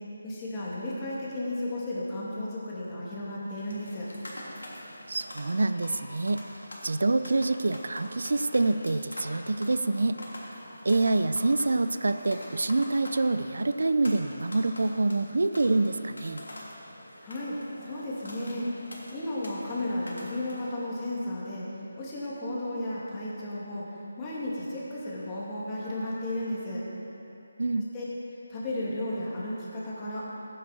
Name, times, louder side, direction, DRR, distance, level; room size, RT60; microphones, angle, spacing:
voice 1, 0.2-4.1 17.2-17.6 17.8-18.7 19.1-21.7 22.0-26.8 27.9-28.0 28.5-30.2, left 1 dB, 20° left, -7 dB, 2.5 m, -34 dB
sound 1, 3.4-20.8, left 1 dB, 90° left, 2.9 m, -45 dB
voice 2, 5.1-6.4 6.8-10.2 10.8-16.4 27.6-27.9, right 2 dB, 70° right, 11 dB, 0.5 m, -26 dB
15.0 x 10.0 x 4.4 m, 2.9 s
figure-of-eight pair, 160°, 0 cm